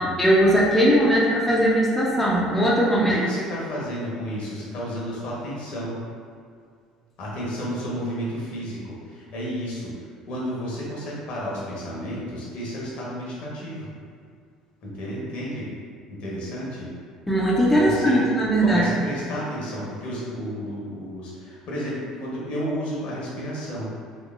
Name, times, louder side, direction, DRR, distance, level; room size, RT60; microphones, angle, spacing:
voice 1, 0.0-3.1 17.3-18.9, equal, 10° left, -6 dB, 0.6 m, -19 dB
voice 2, 3.0-5.9 7.2-13.9 14.8-15.7 16.1-16.9 17.7-18.2 18.6-23.9, equal, 50° left, -5 dB, 1.0 m, -32 dB
3.4 x 3.0 x 2.4 m, 2.2 s
figure-of-eight pair, 60°, 3 cm